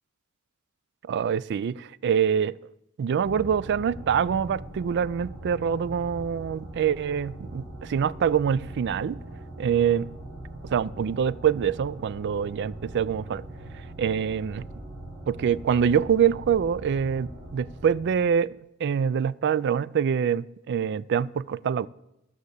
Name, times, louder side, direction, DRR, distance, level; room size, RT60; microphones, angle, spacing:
voice 1, 1.1-2.6 3.0-9.2 9.6-10.1 10.7-13.4 14.0-14.7 15.3-18.5 18.8-21.9, right 7 dB, 55° right, 0.3 m, -25 dB
sound 1, 3.2-18.4, right 1 dB, 80° right, 4.5 m, -41 dB
13.0 x 6.6 x 8.1 m
head